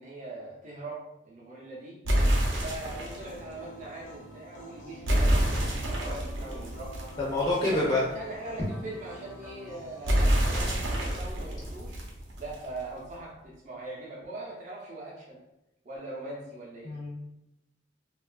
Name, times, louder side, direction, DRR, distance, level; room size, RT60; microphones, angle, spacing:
voice 1, 0.0-2.0 2.5-7.1 7.6-12.0 12.4-15.4 15.8-17.0, right 2 dB, 40° right, -4 dB, 0.5 m, -41 dB
sound 1, 2.0-3.3 5.0-7.8 10.0-12.8, equal, 85° right, 0.6 m, -27 dB
sound 2, 2.6-10.4, equal, 85° left, 0.5 m, -48 dB
voice 2, 7.2-8.0 16.8-17.2, left 2 dB, 25° left, -6 dB, 0.5 m, -27 dB
2.8 x 2.3 x 2.3 m, 0.89 s
head